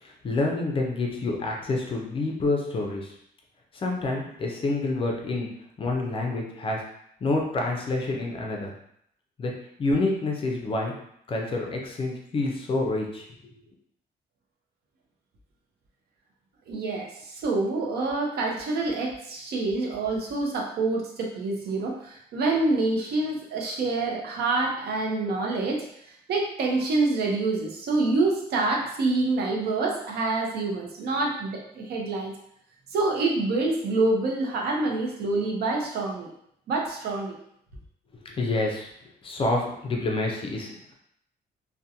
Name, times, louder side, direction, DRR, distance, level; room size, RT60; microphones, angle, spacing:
voice 1, 0.0-3.1 3.7-5.5 5.8-6.8 7.2-8.7 9.4-9.5 9.8-10.9 11.3-13.5 38.2-38.9 39.2-40.9, left 2 dB, 30° left, 0 dB, 0.4 m, -28 dB
voice 2, 16.7-25.9 26.3-32.3 32.9-36.3 36.7-37.4, right 3 dB, 70° right, -1 dB, 0.6 m, -26 dB
2.5 x 2.1 x 2.7 m, 0.73 s
cardioid pair, 155°, 17 cm